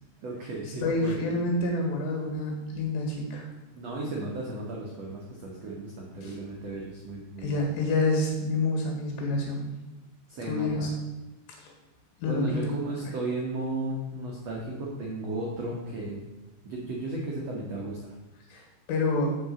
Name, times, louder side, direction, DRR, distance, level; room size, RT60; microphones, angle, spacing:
voice 1, 0.2-1.2 3.7-7.6 10.3-10.9 12.3-16.2 16.6-18.0, right 2 dB, 80° right, -2 dB, 1.4 m, -34 dB
voice 2, 0.8-3.5 6.2-6.3 7.4-9.7 10.5-10.9 11.6-11.7 12.2-12.7 18.5-19.3, left 2 dB, 80° left, 1 dB, 4.0 m, -28 dB
7.7 x 5.4 x 6.9 m, 1.0 s
omnidirectional pair, 4.9 m